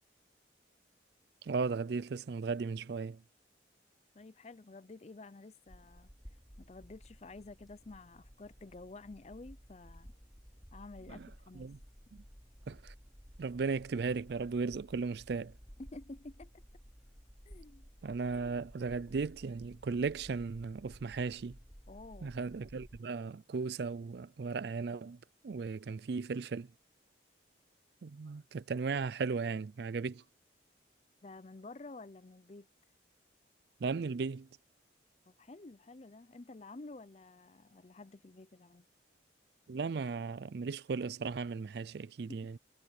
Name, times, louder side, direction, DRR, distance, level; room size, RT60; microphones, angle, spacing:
voice 1, 1.4-3.2 11.1-11.3 11.6-11.8 12.1-12.2 12.7-12.9 13.4-15.5 18.0-21.6 22.2-25.2 25.4-26.7 28.0-30.2 33.8-34.5 39.7-42.6, right 4 dB, 55° right, 0.4 m, -36 dB
voice 2, 4.1-6.1 6.6-10.1 10.7-11.7 15.8-16.6 17.5-17.9 21.9-22.4 31.2-32.7 35.3-38.9 42.3-42.4, left 2 dB, 35° left, 0.5 m, -51 dB
sound 1, 5.7-23.0, equal, ahead, 3.7 m, -56 dB
head